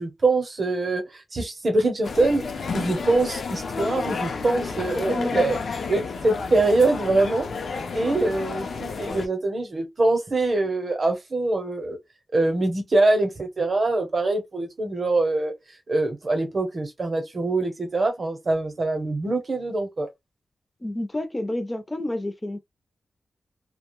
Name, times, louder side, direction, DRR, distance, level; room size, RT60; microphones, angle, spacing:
voice 1, 0.0-2.4 2.7-5.6 5.9-7.5 7.9-12.0 12.3-15.5 15.9-20.1, right 2 dB, 40° right, 0.8 m, -24 dB
sound 1, 2.0-9.3, left 4 dB, 70° left, 0.5 m, -31 dB
voice 2, 5.0-5.4 20.8-22.6, left 1 dB, 15° left, 0.5 m, -29 dB
2.3 x 2.1 x 3.0 m
wide cardioid pair, 165°, 0 cm